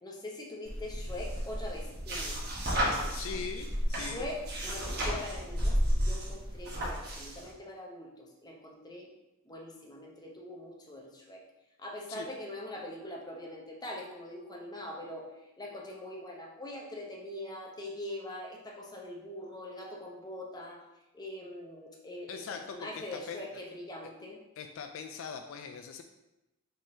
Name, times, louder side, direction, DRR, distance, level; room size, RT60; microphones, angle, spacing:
voice 1, 0.0-2.4 4.0-9.1 9.5-11.4 11.8-15.3 15.6-20.8 21.1-22.4 22.7-24.4, left 1 dB, 20° left, -1 dB, 0.7 m, -42 dB
sound 1, 0.7-7.5, equal, 50° right, 1.1 m, -32 dB
voice 2, 3.1-4.3 12.1-12.3 22.3-23.4 24.6-26.0, left 6 dB, 65° left, 6 dB, 0.3 m, -41 dB
5.3 x 3.6 x 2.7 m, 0.94 s
head